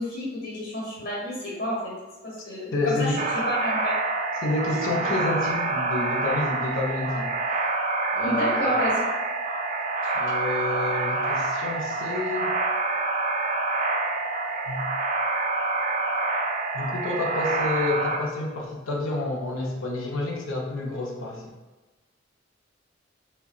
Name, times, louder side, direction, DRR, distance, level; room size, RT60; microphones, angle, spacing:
voice 1, 0.0-1.9 2.2-3.2 3.5-3.9 8.2-9.1, equal, 55° left, -6 dB, 1.1 m, -29 dB
voice 2, 2.7-3.2 4.4-7.4 8.1-8.7 10.1-12.5 14.7-14.9 16.7-21.5, left 2 dB, 85° left, 0 dB, 0.6 m, -29 dB
sound 1, 3.2-18.2, right 3 dB, 40° right, 0.4 m, -27 dB
3.7 x 2.1 x 2.3 m, 1.2 s
head